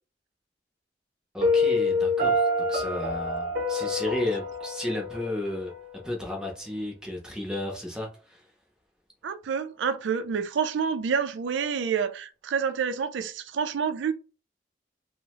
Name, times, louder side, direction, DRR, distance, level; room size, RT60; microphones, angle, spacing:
voice 1, 1.3-5.7 6.0-8.4, left 1 dB, 5° right, 0.6 m, -33 dB
Piano, 1.4-6.4, left 2 dB, 50° right, 0.8 m, -27 dB
voice 2, 9.2-14.1, right 6 dB, 90° right, 0.4 m, -28 dB
2.7 x 2.0 x 2.9 m
head